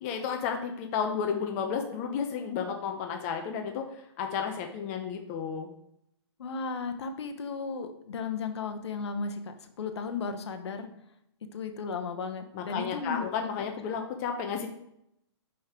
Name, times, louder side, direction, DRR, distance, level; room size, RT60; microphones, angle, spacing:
voice 1, 0.0-5.7 12.5-14.7, left 6 dB, 30° left, 4 dB, 0.7 m, -32 dB
voice 2, 6.4-10.9 11.4-13.5, left 4 dB, 70° left, 7 dB, 1.0 m, -35 dB
5.4 x 5.3 x 4.4 m, 0.78 s
hypercardioid pair, 150°, 15 cm